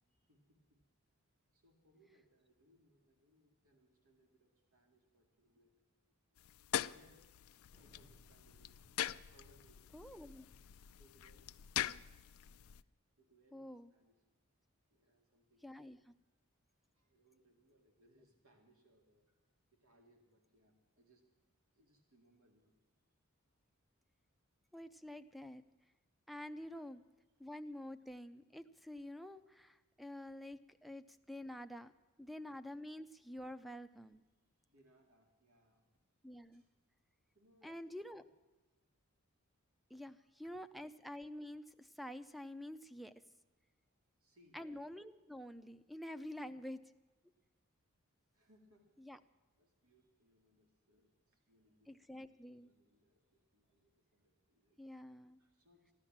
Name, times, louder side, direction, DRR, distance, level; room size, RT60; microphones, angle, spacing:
voice 1, 0.1-0.8 1.5-5.8 6.1-6.2 6.7-7.3 7.8-8.8 9.3-9.8 11.0-11.6 12.8-14.2 14.9-15.9 16.2-16.3 16.7-19.4 19.7-21.3 21.7-22.8 23.4-23.6 26.7-26.9 30.7-30.8 34.6-36.0 36.5-36.8 37.3-38.2 39.9-40.7 43.9-44.6 46.4-46.6 48.3-49.0 49.6-54.8 55.4-55.9, equal, 80° right, 2 dB, 2.3 m, -71 dB
sound 1, 6.4-12.8, left 11 dB, 75° left, 0.4 m, -43 dB
Thunder, 7.7-12.9, equal, 35° right, 1.7 m, -72 dB
voice 2, 9.9-10.4 13.5-13.9 15.6-16.0 24.7-25.6 26.3-27.0 27.4-31.9 32.2-34.2 36.2-36.6 37.6-38.2 39.9-43.1 44.5-46.8 49.1-49.2 51.9-52.7 54.8-55.4, left 1 dB, ahead, 12 dB, 0.5 m, -48 dB
15.5 x 11.5 x 7.4 m, 1.2 s
head